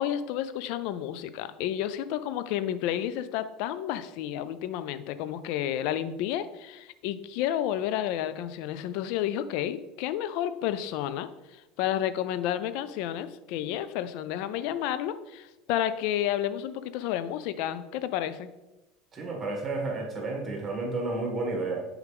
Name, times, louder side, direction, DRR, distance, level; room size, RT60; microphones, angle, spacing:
voice 1, 0.0-18.5, left 11 dB, 65° left, 13 dB, 0.4 m, -31 dB
voice 2, 19.1-21.9, right 3 dB, 25° right, 1 dB, 2.2 m, -31 dB
6.5 x 4.8 x 3.5 m, 1.0 s
hypercardioid pair, 85°, 0 cm